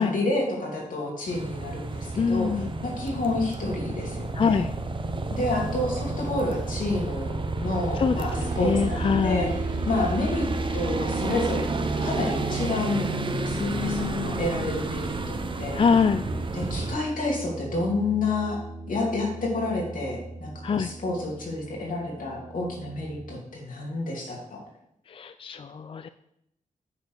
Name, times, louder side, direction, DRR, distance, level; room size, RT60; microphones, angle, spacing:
voice 1, 0.0-2.5 2.8-4.6 5.3-9.5 9.8-10.5 10.7-11.7 12.0-15.8 16.5-18.6 18.9-24.6, left 2 dB, 75° left, -2 dB, 2.8 m, -29 dB
sound 1, 1.3-17.0, right 3 dB, 35° right, 0.8 m, -31 dB
voice 2, 2.2-2.7 4.3-4.7 7.9-9.5 13.6-14.4 15.7-16.2 20.6-20.9 25.1-26.1, left 6 dB, 40° left, 11 dB, 0.4 m, -25 dB
sound 2, 8.3-23.4, right 2 dB, 65° right, 1.8 m, -39 dB
9.5 x 4.5 x 6.2 m, 0.78 s
wide cardioid pair, 100°, 14 cm